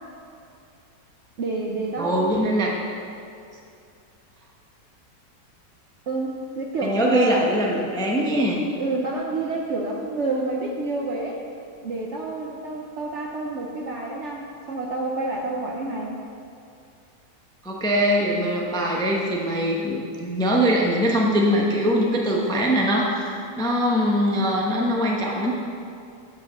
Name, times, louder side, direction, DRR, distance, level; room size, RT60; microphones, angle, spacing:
voice 1, 1.4-2.3 6.1-7.4 8.8-11.4 11.8-16.2, right 3 dB, 60° right, -1 dB, 0.8 m, -28 dB
voice 2, 2.0-2.7 6.8-8.6 17.6-25.5, equal, 5° left, -2 dB, 0.5 m, -22 dB
8.9 x 4.9 x 6.5 m, 2.5 s
omnidirectional pair, 1.9 m